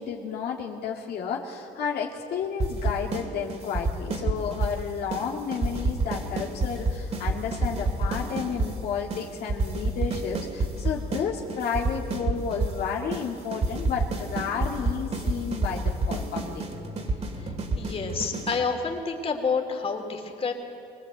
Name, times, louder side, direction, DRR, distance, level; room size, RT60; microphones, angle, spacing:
voice 1, 0.0-16.6, left 6 dB, 70° left, -1 dB, 2.3 m, -32 dB
sound 1, 2.6-3.2 3.5-4.8 5.1-5.3 5.5-8.7 9.1-9.2 9.5-11.2 11.5-12.8 13.1-13.2 13.5-18.6, right 2 dB, 40° right, 2.9 m, -28 dB
voice 2, 17.4-20.5, left 5 dB, 35° left, 3 dB, 3.2 m, -29 dB
23.5 x 20.0 x 8.0 m, 2.5 s
cardioid pair, 110°, 17 cm